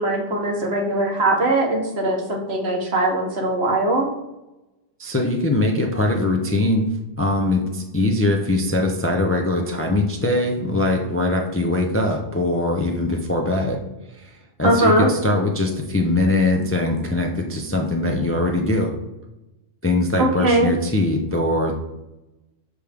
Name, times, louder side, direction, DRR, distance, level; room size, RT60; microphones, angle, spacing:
voice 1, 0.0-4.1 14.6-15.1 20.2-20.7, right 1 dB, 60° right, 1 dB, 1.4 m, -20 dB
voice 2, 5.0-6.9 7.2-13.8 14.2-14.3 14.6-18.9 19.8-21.7, left 2 dB, 15° left, 1 dB, 0.5 m, -21 dB
6.2 x 5.0 x 3.5 m, 0.98 s
omnidirectional pair, 1.2 m